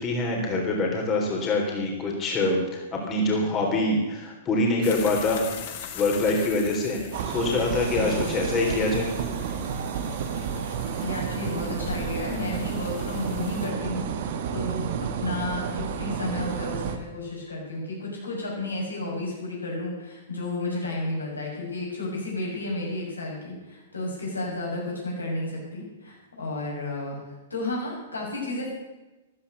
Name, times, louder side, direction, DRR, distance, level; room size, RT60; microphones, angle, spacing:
voice 1, 0.0-5.5 5.9-9.1, left 2 dB, 25° left, 0 dB, 3.6 m, -25 dB
sound 1, 4.8-13.7, left 7 dB, 50° left, 2.2 m, -41 dB
sound 2, 7.1-17.0, right 7 dB, 50° right, 1.6 m, -31 dB
voice 2, 8.0-8.3 11.0-28.7, left 2 dB, 85° left, -3 dB, 6.9 m, -32 dB
14.0 x 13.5 x 6.8 m, 1.1 s
figure-of-eight pair, 110°, 0 cm